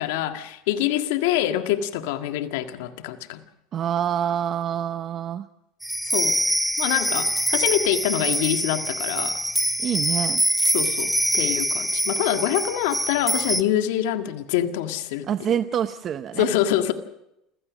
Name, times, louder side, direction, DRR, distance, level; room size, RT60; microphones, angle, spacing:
voice 1, 0.0-3.4 6.1-6.4 6.8-9.4 10.7-15.3 16.4-16.9, left 12 dB, 80° left, 7 dB, 1.8 m, -25 dB
voice 2, 3.7-5.5 9.8-10.4 15.3-16.5, right 9 dB, 40° right, 11 dB, 0.8 m, -26 dB
sound 1, 5.8-13.6, equal, ahead, 0.9 m, -24 dB
28.5 x 16.0 x 6.3 m, 0.84 s
supercardioid pair, 115°, 0 cm